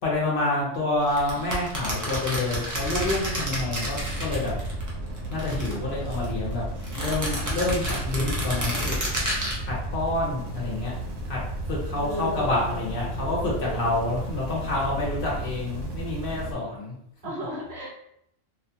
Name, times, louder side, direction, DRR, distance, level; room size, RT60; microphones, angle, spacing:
voice 1, 0.0-4.5 5.3-6.6 6.9-9.0 9.6-10.9 11.3-11.4 11.7-16.9, left 2 dB, 50° left, -5 dB, 0.9 m, -28 dB
sound 1, 1.1-4.9 5.2-6.3 6.8-9.6, equal, 30° right, 0.3 m, -30 dB
sound 2, 2.8-16.5, right 1 dB, 90° right, 1.0 m, -34 dB
voice 2, 12.0-14.1 17.2-17.9, equal, 65° right, -2 dB, 0.8 m, -36 dB
2.5 x 2.3 x 2.7 m, 0.75 s
omnidirectional pair, 1.3 m